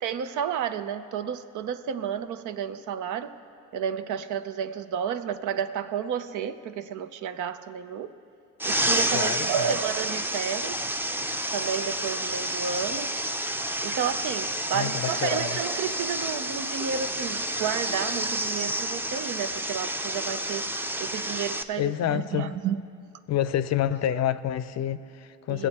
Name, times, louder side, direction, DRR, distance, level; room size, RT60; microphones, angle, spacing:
voice 1, 0.0-3.3 3.7-8.1 8.6-10.9 11.5-13.1 13.8-20.6 21.0-22.8 24.1-24.2 25.5-25.7, right 8 dB, 80° right, 0.7 m, -31 dB
sound 1, 8.6-21.6, right 1 dB, 5° right, 0.5 m, -29 dB
voice 2, 9.1-9.7 14.7-15.6 21.8-22.5 23.3-25.7, left 11 dB, 60° left, 0.5 m, -28 dB
21.0 x 8.1 x 4.2 m
cardioid pair, 90°, 30 cm